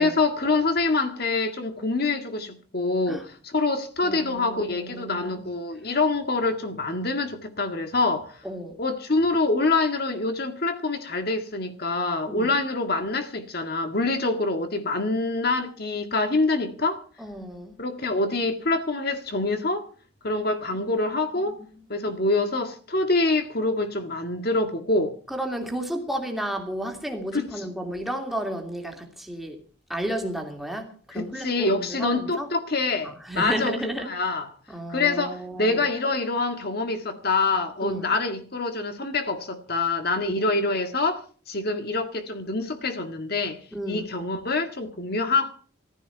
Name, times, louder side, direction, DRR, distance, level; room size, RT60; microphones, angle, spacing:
voice 1, 0.0-8.4 8.8-17.0 17.8-19.8 20.2-21.5 21.9-25.1 27.3-27.5 31.1-34.5 34.9-43.6 43.9-45.5, left 3 dB, 50° left, 1.8 m, -25 dB
voice 2, 4.0-5.4 8.4-8.8 12.3-12.5 17.2-17.8 20.8-21.0 21.5-21.9 25.3-29.6 29.9-32.5 33.0-34.1 34.7-35.9 37.8-38.1 40.2-40.5 43.7-44.1, right 1 dB, ahead, 2.6 m, -33 dB
17.5 x 15.0 x 4.6 m
head